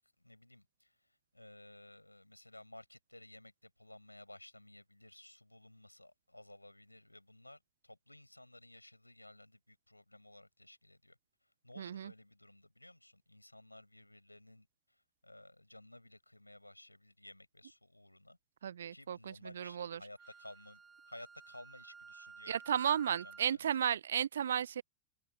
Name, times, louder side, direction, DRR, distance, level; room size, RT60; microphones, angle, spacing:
voice 1, 0.2-11.2 11.6-18.4 18.9-23.7, left 1 dB, 85° left, 7.4 m, -56 dB
voice 2, 11.8-12.1 18.6-20.0 22.5-24.8, right 9 dB, 65° right, 0.8 m, -34 dB
Wind instrument woodwind instrument, 20.2-23.5, right 5 dB, 15° right, 1.8 m, -54 dB
open air
figure-of-eight pair, 90°, 0 cm